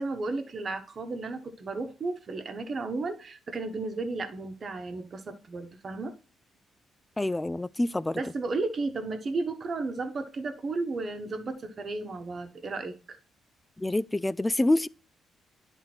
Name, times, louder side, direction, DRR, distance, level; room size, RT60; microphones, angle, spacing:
voice 1, 0.0-6.2 8.1-13.2, right 3 dB, 45° right, 1.2 m, -33 dB
voice 2, 7.2-8.2 13.8-14.9, left 1 dB, 15° left, 0.3 m, -26 dB
10.5 x 3.6 x 4.4 m
cardioid pair, 90°, 0 cm